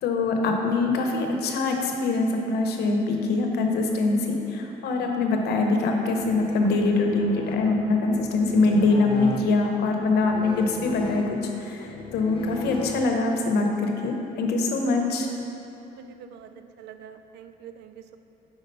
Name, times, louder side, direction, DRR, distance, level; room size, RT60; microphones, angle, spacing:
voice 1, 0.0-15.3, left 3 dB, 75° left, 3 dB, 0.8 m, -24 dB
sound 1, 6.0-13.5, left 3 dB, 30° left, 0.6 m, -37 dB
voice 2, 15.9-16.5 16.8-18.2, right 8 dB, 80° right, 9 dB, 0.4 m, -45 dB
5.3 x 4.9 x 5.3 m, 2.9 s
cardioid pair, 110°, 17 cm